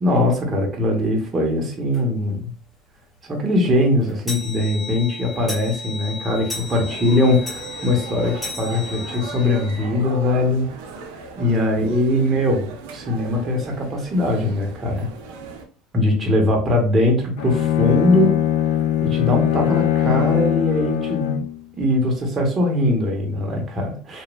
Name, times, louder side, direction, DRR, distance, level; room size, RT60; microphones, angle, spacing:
voice 1, 0.0-2.4 3.2-10.7 11.4-15.1 15.9-18.4 19.0-21.4 21.8-24.2, left 1 dB, 30° right, 1 dB, 1.0 m, -21 dB
sound 1, 1.9-2.1 2.6-2.7 3.0-3.1 3.4-9.9, left 3 dB, 10° left, 1.1 m, -35 dB
sound 2, 6.5-15.6, right 4 dB, 80° right, 0.5 m, -38 dB
Bowed string instrument, 17.4-21.6, left 11 dB, 85° left, 0.4 m, -21 dB
3.0 x 2.3 x 2.2 m, 0.42 s
supercardioid pair, 105°, 0 cm